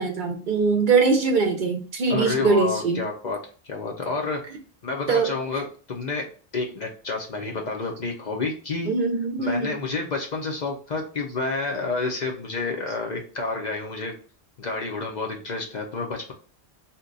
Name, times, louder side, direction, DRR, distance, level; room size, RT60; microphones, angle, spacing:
voice 1, 0.0-3.0 4.4-4.6 5.1-5.6 8.8-9.8 12.9-13.0, right 4 dB, 60° right, 4 dB, 0.6 m, -23 dB
voice 2, 2.1-3.4 3.6-4.5 4.8-8.9 9.4-14.2 14.6-16.3, left 3 dB, 55° left, 1 dB, 0.6 m, -29 dB
2.8 x 2.2 x 3.8 m, 0.40 s
omnidirectional pair, 1.1 m